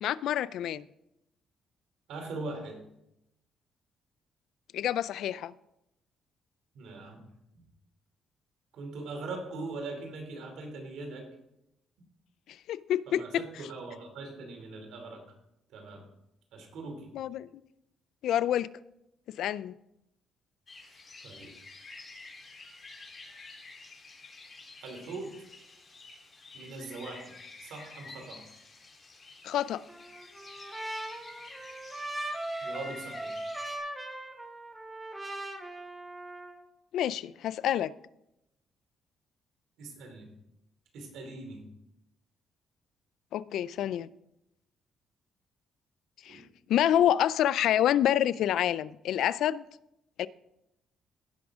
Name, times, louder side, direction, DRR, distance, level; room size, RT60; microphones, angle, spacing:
voice 1, 0.0-0.8 4.7-5.5 12.7-13.4 17.1-17.6 18.2-18.7 19.4-19.7 29.4-29.8 36.9-37.9 43.3-44.1 46.2-46.4 46.7-49.6 50.2-50.3, left 11 dB, 80° left, 0.3 m, -27 dB
voice 2, 2.1-2.8 6.7-7.2 8.7-11.3 13.1-15.2 15.7-16.1 16.5-17.1 21.2-21.5 24.8-25.4 26.5-28.4 32.6-33.4 39.8-40.3 40.9-41.7 46.3-46.5, right 3 dB, 80° right, 2.7 m, -41 dB
sound 1, 20.7-33.8, left 3 dB, 35° left, 3.3 m, -50 dB
Trumpet, 29.9-36.6, right 1 dB, 15° right, 1.5 m, -39 dB
16.5 x 6.2 x 3.6 m
cardioid pair, 90°, 0 cm